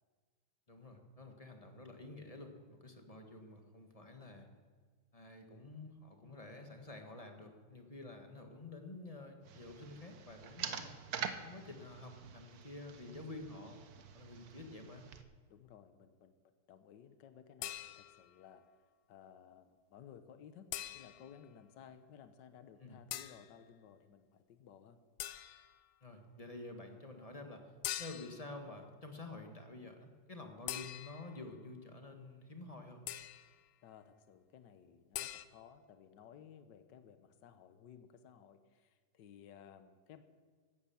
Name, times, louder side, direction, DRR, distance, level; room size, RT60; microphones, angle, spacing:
voice 1, 0.7-4.5 5.1-11.0 11.4-13.8 14.1-15.0 22.8-23.0 26.0-27.7 28.0-33.1, left 2 dB, 20° left, 4 dB, 1.5 m, -50 dB
sound 1, 9.5-15.2, right 7 dB, 60° right, 1.3 m, -46 dB
voice 2, 15.5-16.4 16.7-18.6 19.1-25.0 33.8-40.2, left 8 dB, 65° left, 9 dB, 1.6 m, -57 dB
sound 2, 17.6-18.3 20.7-21.4 23.1-23.5 25.2-25.8 27.8-28.5 30.7-31.4 33.1-33.5 35.1-35.5, left 13 dB, 80° left, 1.4 m, -43 dB
16.5 x 12.0 x 7.0 m, 1.5 s
omnidirectional pair, 2.1 m